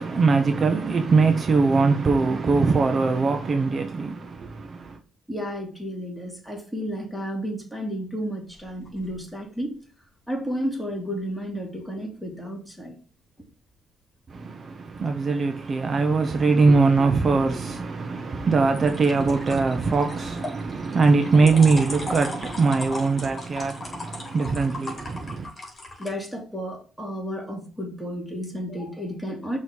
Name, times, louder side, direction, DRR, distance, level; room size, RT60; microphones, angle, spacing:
voice 1, 0.0-5.0 14.3-25.5, right 4 dB, 40° right, 0.7 m, -22 dB
voice 2, 5.3-9.7 10.3-13.0 26.0-29.6, equal, ahead, 2.4 m, -32 dB
sound 1, 8.5-9.2 18.7-26.1, left 1 dB, 30° left, 3.0 m, -37 dB
6.2 x 3.1 x 5.3 m
cardioid pair, 90°, 0 cm